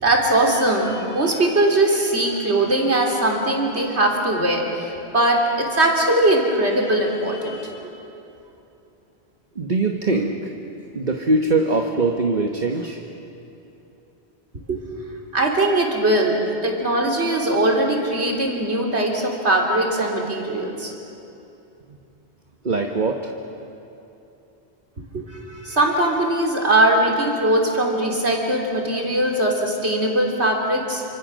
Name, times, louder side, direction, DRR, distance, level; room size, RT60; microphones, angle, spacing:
voice 1, 0.0-7.9 14.7-14.8 15.3-20.9 25.1-31.0, right 1 dB, 85° right, 0 dB, 3.6 m, -20 dB
voice 2, 9.6-10.4 10.9-13.0 22.6-23.3, right 3 dB, 45° right, 3 dB, 1.3 m, -22 dB
27.5 x 25.5 x 6.3 m, 2.9 s
omnidirectional pair, 1.1 m